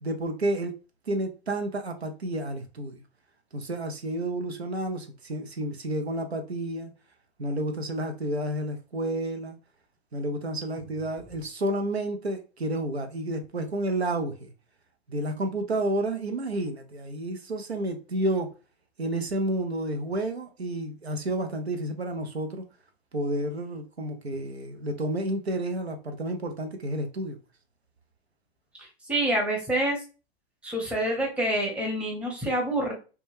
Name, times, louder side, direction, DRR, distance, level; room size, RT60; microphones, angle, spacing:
voice 1, 0.0-0.7 1.1-3.0 3.5-6.9 7.4-9.6 10.1-14.5 15.1-18.5 19.0-22.6 23.1-27.4, right 1 dB, 90° right, 0.6 m, -30 dB
voice 2, 28.8-30.0 30.6-32.9, right 1 dB, 5° right, 0.6 m, -27 dB
2.2 x 2.2 x 3.1 m
figure-of-eight pair, 105°, 31 cm